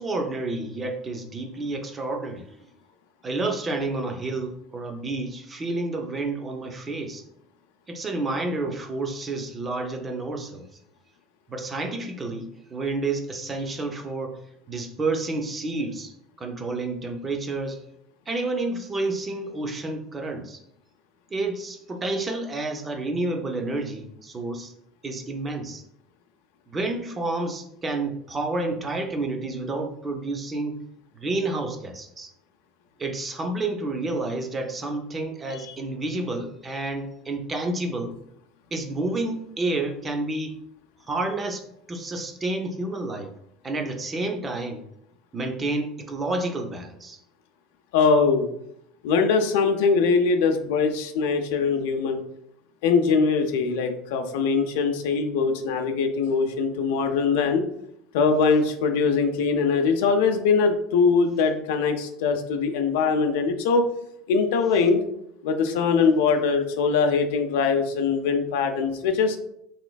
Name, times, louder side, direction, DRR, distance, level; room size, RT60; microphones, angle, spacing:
voice 1, 0.0-2.6 3.2-7.2 7.9-10.6 11.5-14.4 14.7-17.8 18.3-20.6 21.3-24.7 25.0-25.8 26.7-30.8 31.1-32.3 33.0-38.2 38.7-40.5 41.1-41.6 41.9-43.3 43.6-44.8 45.3-47.2, right 2 dB, 20° right, 4 dB, 0.4 m, -30 dB
voice 2, 47.9-48.5 49.0-52.2 52.8-57.6 58.1-63.8 64.3-65.0 65.4-69.4, left 5 dB, 85° left, 5 dB, 0.4 m, -22 dB
3.3 x 3.0 x 2.2 m, 0.75 s
cardioid pair, 155°, 0 cm